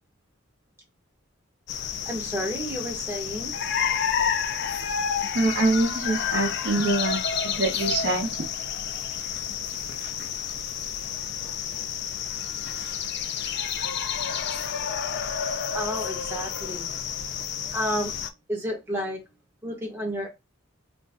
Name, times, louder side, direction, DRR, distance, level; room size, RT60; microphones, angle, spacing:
sound 1, 1.7-18.3, left 7 dB, 50° left, 0.3 m, -30 dB
voice 1, 2.0-3.7 15.7-16.9 17.7-18.2 18.5-19.4 19.6-20.3, equal, 10° right, 0.9 m, -31 dB
voice 2, 5.3-8.3 10.0-10.1, right 2 dB, 55° right, 0.7 m, -25 dB
2.5 x 2.2 x 3.4 m
head